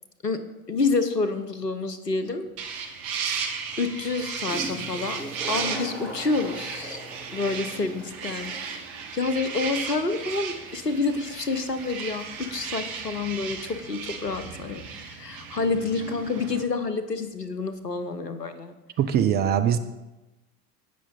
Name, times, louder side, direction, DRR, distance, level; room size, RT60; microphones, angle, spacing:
voice 1, 0.7-2.5 3.8-7.0 7.3-18.7, left 3 dB, 90° left, 10 dB, 0.9 m, -28 dB
Toilet flush, 2.4-2.5 4.2-4.3 4.5-13.9, equal, 5° left, 3.3 m, -41 dB
sound 1, 2.6-16.6, right 6 dB, 55° right, 1.4 m, -35 dB
voice 2, 19.0-19.8, right 9 dB, 20° right, 8 dB, 0.4 m, -22 dB
17.0 x 6.1 x 3.9 m, 1.0 s
figure-of-eight pair, 75°, 47 cm